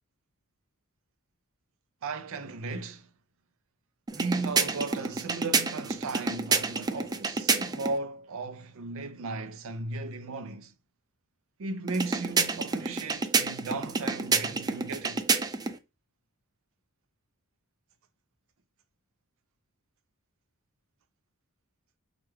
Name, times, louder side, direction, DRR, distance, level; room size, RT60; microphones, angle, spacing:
voice 1, 2.0-3.1 4.1-10.7 11.6-15.2, right 3 dB, 65° right, 0.5 m, -36 dB
sound 1, 4.1-8.0 11.9-15.8, right 4 dB, 20° right, 0.3 m, -29 dB
4.5 x 2.5 x 3.1 m
head